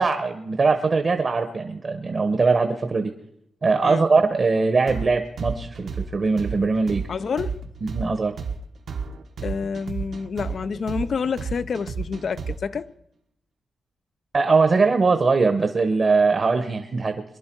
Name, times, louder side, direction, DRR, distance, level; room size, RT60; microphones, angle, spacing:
voice 1, 0.0-3.1 3.6-7.1 7.9-8.3 14.3-17.2, right 4 dB, 45° right, 1.1 m, -21 dB
sound 1, 4.9-12.8, right 5 dB, 65° right, 1.2 m, -32 dB
voice 2, 7.1-7.6 9.4-12.9, left 5 dB, 60° left, 0.6 m, -28 dB
23.5 x 11.0 x 4.7 m
cardioid pair, 80°, 0 cm